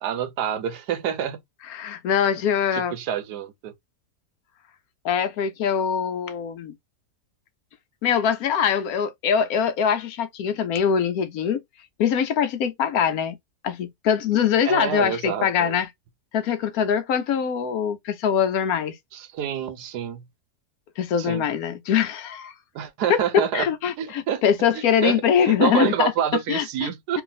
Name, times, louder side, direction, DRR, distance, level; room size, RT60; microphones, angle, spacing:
voice 1, 0.0-1.4 2.7-3.7 14.6-15.8 19.1-20.2 21.2-21.4 22.7-23.7 24.0-24.4 24.7-27.2, right 9 dB, 80° right, 1.3 m, -27 dB
voice 2, 1.7-2.9 5.0-6.7 8.0-11.6 12.0-13.3 13.6-15.9 16.3-18.9 21.0-22.5 23.5-26.1 26.5-26.9, left 8 dB, 70° left, 1.0 m, -23 dB
3.3 x 2.5 x 3.8 m
omnidirectional pair, 1.8 m